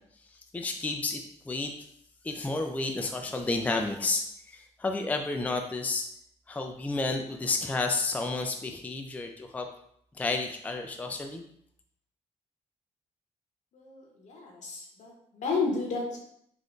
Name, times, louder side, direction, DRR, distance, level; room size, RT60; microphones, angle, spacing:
voice 1, 0.5-1.7 2.2-6.1 6.5-9.7 10.1-11.4, left 3 dB, 10° left, 4 dB, 0.3 m, -31 dB
voice 2, 13.7-16.2, left 4 dB, 70° left, 0 dB, 0.9 m, -32 dB
3.5 x 2.5 x 2.5 m, 0.70 s
cardioid pair, 75°, 13 cm